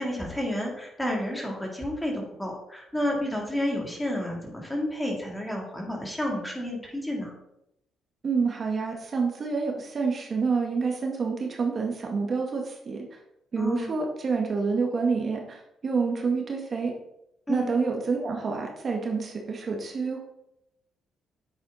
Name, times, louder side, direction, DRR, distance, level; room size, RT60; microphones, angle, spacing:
voice 1, 0.0-7.3 13.6-13.9 17.5-17.7, left 1 dB, 10° left, -1 dB, 3.4 m, -30 dB
voice 2, 8.2-13.2 13.5-16.9 17.5-20.2, right 4 dB, 45° right, 1 dB, 1.9 m, -28 dB
9.8 x 8.0 x 4.3 m, 0.83 s
cardioid pair, 85°, 0 cm